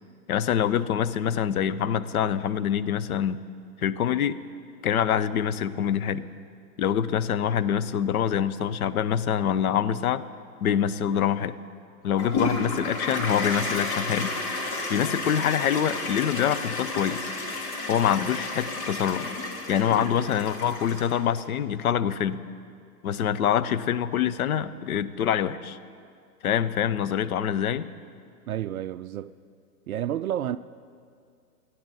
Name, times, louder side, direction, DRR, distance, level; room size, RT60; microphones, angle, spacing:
voice 1, 0.3-3.4 3.8-4.4 4.8-6.3 6.8-10.2 10.6-11.6 12.0-14.3 14.9-17.3 17.9-19.3 19.7-22.4 23.0-25.8 26.4-27.9, left 9 dB, 60° left, 0.8 m, -25 dB
Toilet flush, 12.2-21.4, left 3 dB, 40° left, 2.3 m, -31 dB
voice 2, 28.5-29.3 29.9-30.6, right 11 dB, 60° right, 0.5 m, -30 dB
28.0 x 10.5 x 4.1 m
hypercardioid pair, 145°, 50 cm